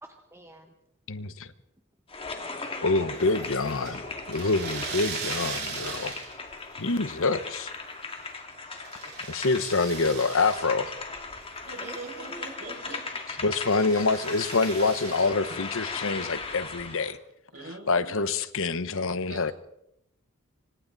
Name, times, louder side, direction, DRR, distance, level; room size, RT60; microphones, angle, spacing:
voice 1, 0.0-0.7 8.7-9.2 11.8-13.0, right 1 dB, 10° right, 1.3 m, -48 dB
voice 2, 1.1-1.5 2.8-6.2 6.8-7.7 9.3-10.9 13.4-17.2 17.9-19.5, left 3 dB, 65° left, 1.1 m, -26 dB
sound 1, 2.1-17.2, left 3 dB, 25° left, 2.4 m, -38 dB
sound 2, 3.1-6.5 6.8-7.5 7.9-10.7 11.1-11.2 11.6-13.0 13.5-15.3, right 5 dB, 50° right, 7.5 m, -39 dB
voice 3, 11.6-13.5 15.5-15.6 17.5-18.1 19.3-19.5, right 2 dB, 75° right, 5.9 m, -43 dB
26.0 x 24.5 x 4.1 m
head